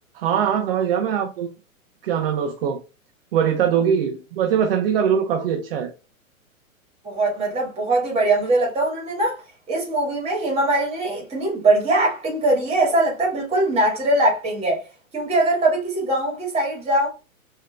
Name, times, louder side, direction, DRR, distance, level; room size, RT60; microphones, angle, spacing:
voice 1, 0.1-1.5 2.0-2.8 3.3-5.9, right 8 dB, 45° right, 0.5 m, -22 dB
voice 2, 7.0-9.4 9.7-14.8 15.1-17.1, right 2 dB, 15° right, 1.5 m, -21 dB
4.3 x 2.7 x 2.2 m
figure-of-eight pair, 115°, 42 cm